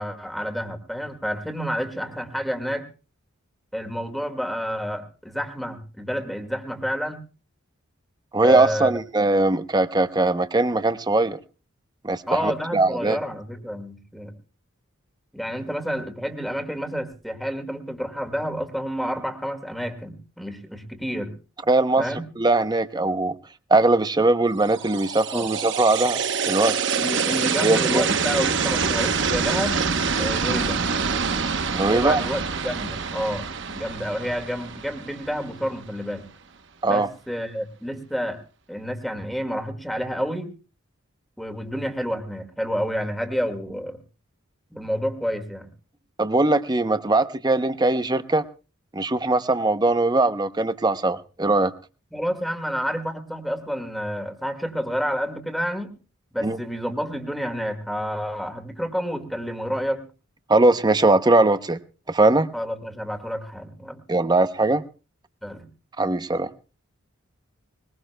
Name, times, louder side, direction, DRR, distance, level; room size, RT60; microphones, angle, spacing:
voice 1, 0.0-2.9 3.7-7.2 8.4-8.9 12.3-14.3 15.3-21.3 22.0-22.3 25.3-25.5 27.0-29.8 30.2-30.9 31.8-36.3 36.8-38.4 38.7-40.5 41.4-44.0 44.7-45.7 52.1-55.9 56.3-60.0 62.5-64.0 65.4-65.7, equal, ahead, 6 dB, 1.8 m, -29 dB
voice 2, 8.3-11.4 12.0-13.2 21.7-22.1 22.4-23.4 23.7-26.2 26.5-26.8 27.6-28.0 31.7-32.2 36.8-37.1 46.2-48.4 48.9-51.7 56.4-56.6 60.5-61.8 62.1-62.5 64.1-64.8 66.0-66.5, right 2 dB, 20° right, 11 dB, 0.7 m, -20 dB
sound 1, 24.6-35.7, right 5 dB, 55° right, 0.9 m, -26 dB
21.0 x 21.0 x 2.2 m, 0.34 s
head